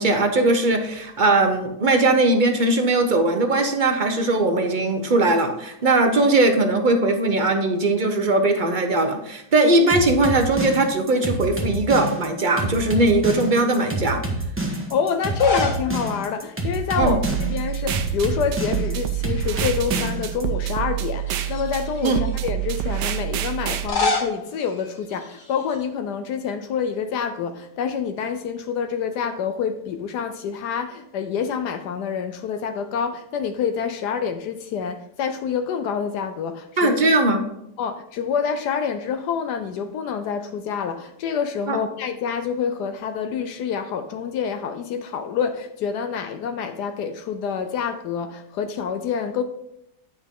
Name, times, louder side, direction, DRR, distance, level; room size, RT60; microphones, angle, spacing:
voice 1, 0.0-14.2 17.0-17.2 22.0-22.2 36.8-37.4 41.7-41.8, right 2 dB, 45° right, 0.6 m, -19 dB
sound 1, 9.9-20.4, right 1 dB, 10° right, 1.0 m, -27 dB
voice 2, 14.9-37.0 37.8-49.4, left 6 dB, 75° left, 1.2 m, -27 dB
sound 2, 15.2-15.9 16.2-16.3 17.7-18.2 18.5-19.6 20.2-20.3 21.2-22.4 23.6-25.8, left 2 dB, 35° left, 1.2 m, -29 dB
sound 3, 17.0-23.9, right 12 dB, 90° right, 1.3 m, -27 dB
9.5 x 6.1 x 3.6 m
omnidirectional pair, 1.8 m